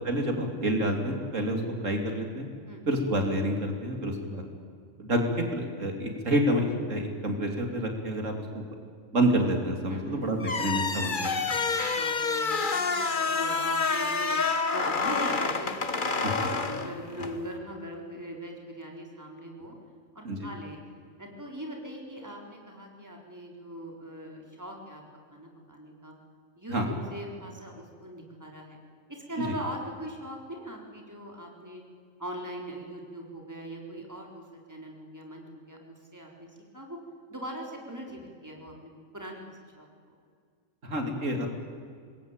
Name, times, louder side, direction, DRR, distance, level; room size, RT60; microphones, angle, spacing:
voice 1, 0.0-2.5 2.9-4.4 5.0-5.2 5.5-8.6 9.1-11.4 16.2-16.3 20.2-20.5 26.7-26.9 29.5-29.6 40.8-41.5, right 1 dB, 85° right, 3 dB, 3.4 m, -28 dB
voice 2, 9.9-10.2 11.7-14.3 14.7-19.7 20.1-20.8 21.2-25.0 25.3-26.1 26.6-28.8 29.1-31.8 32.2-34.4 34.7-35.8 36.1-36.5 36.7-37.0 37.3-39.4 39.8-39.9, right 1 dB, 15° right, 0 dB, 4.1 m, -40 dB
sound 1, 10.4-17.4, left 4 dB, 40° left, 1.5 m, -28 dB
25.5 x 21.0 x 9.0 m, 2.1 s
omnidirectional pair, 1.3 m